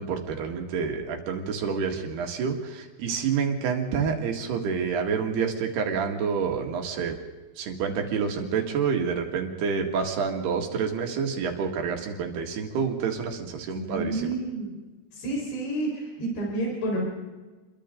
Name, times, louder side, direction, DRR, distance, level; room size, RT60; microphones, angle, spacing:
voice 1, 0.0-7.2 7.6-14.3, right 6 dB, 75° right, 3 dB, 4.0 m, -28 dB
voice 2, 13.7-14.7 15.1-17.0, right 2 dB, 80° left, -2 dB, 6.9 m, -30 dB
29.5 x 23.0 x 3.9 m, 1.2 s
omnidirectional pair, 4.7 m